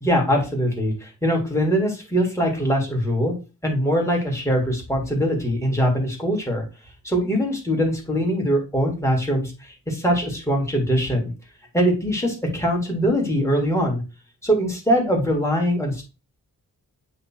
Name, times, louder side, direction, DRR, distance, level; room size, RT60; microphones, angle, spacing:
voice 1, 0.0-3.3 3.6-6.6 7.0-11.3 11.7-14.0 14.4-16.0, equal, 10° left, 0 dB, 2.2 m, -22 dB
8.2 x 3.0 x 4.5 m, 0.30 s
wide cardioid pair, 140°, 33 cm